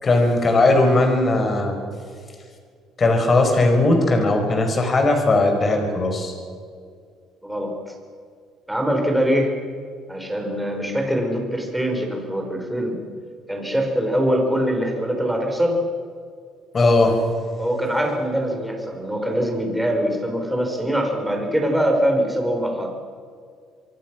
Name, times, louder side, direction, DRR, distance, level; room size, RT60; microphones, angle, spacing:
voice 1, 0.0-1.7 3.0-6.3 16.7-17.1, left 2 dB, 30° left, 4 dB, 5.1 m, -18 dB
voice 2, 7.4-7.9 8.7-9.6 10.1-13.0 13.5-15.8 17.6-22.9, equal, 5° right, 2 dB, 4.5 m, -23 dB
26.0 x 23.0 x 6.2 m, 2.1 s
cardioid pair, 135°, 0 cm